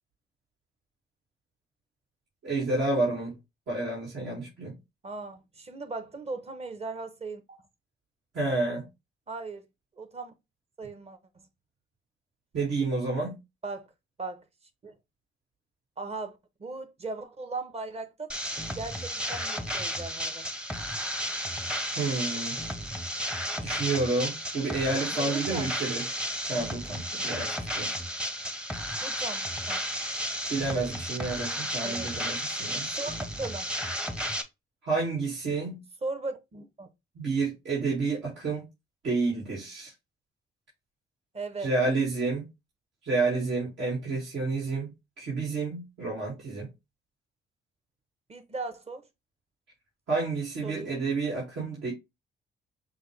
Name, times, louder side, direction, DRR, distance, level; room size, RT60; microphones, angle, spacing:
voice 1, 2.4-3.4 3.7-4.8 8.3-8.9 12.5-13.4 22.0-22.6 23.6-26.1 26.5-27.9 30.5-32.9 34.8-35.8 37.1-38.7 39.0-39.9 41.6-42.5 43.0-46.7 50.1-51.9, right 3 dB, 70° right, 2.2 m, -30 dB
voice 2, 5.0-7.6 9.3-9.7 9.9-10.3 10.8-11.2 13.6-13.9 14.2-14.4 14.8-14.9 16.0-18.3 18.7-20.5 25.1-25.7 29.0-29.8 31.8-32.1 32.9-33.1 33.4-33.7 36.0-36.9 41.3-41.7 48.3-49.0 50.6-50.9, right 3 dB, 30° right, 1.0 m, -38 dB
sound 1, 18.3-34.4, equal, 5° right, 0.7 m, -33 dB
6.0 x 2.2 x 3.2 m
cardioid pair, 90°, 20 cm